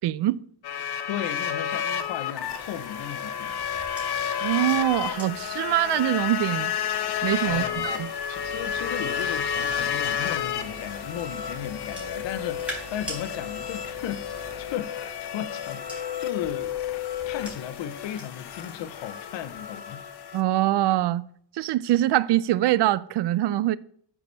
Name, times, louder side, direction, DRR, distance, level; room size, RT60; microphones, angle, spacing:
voice 1, 0.0-0.4 4.4-6.7 7.2-8.1 20.3-21.3 21.5-23.8, right 14 dB, 65° right, 0.5 m, -24 dB
sound 1, 0.6-20.4, left 8 dB, 60° left, 0.9 m, -31 dB
voice 2, 1.1-3.6 7.4-16.7 17.2-20.0, left 10 dB, 90° left, 0.8 m, -36 dB
sound 2, 3.2-10.2 10.8-13.2 14.5-18.7 19.1-19.5, equal, 5° right, 4.0 m, -46 dB
sound 3, 8.3-14.8, right 7 dB, 35° right, 0.9 m, -47 dB
8.1 x 4.8 x 6.7 m
cardioid pair, 90°, 44 cm